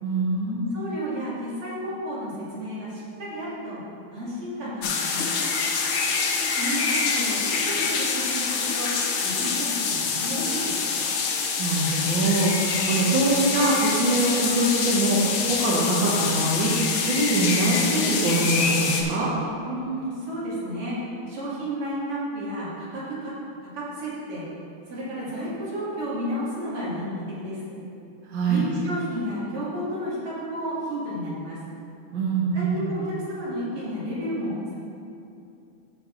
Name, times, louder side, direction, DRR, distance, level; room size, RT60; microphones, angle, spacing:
voice 1, 0.0-0.7 11.6-19.3 28.3-28.6 32.1-32.8, right 2 dB, 60° right, -5 dB, 1.7 m, -23 dB
voice 2, 0.7-3.8 4.1-5.4 6.6-8.9 9.2-11.1 19.6-21.0 21.3-23.3 23.7-24.5 24.9-27.8 28.5-31.6 32.5-34.7, equal, 80° right, -8 dB, 3.1 m, -32 dB
sound 1, 4.8-19.0, left 5 dB, 70° left, 1.6 m, -26 dB
13.5 x 4.8 x 3.8 m, 2.7 s
omnidirectional pair, 2.4 m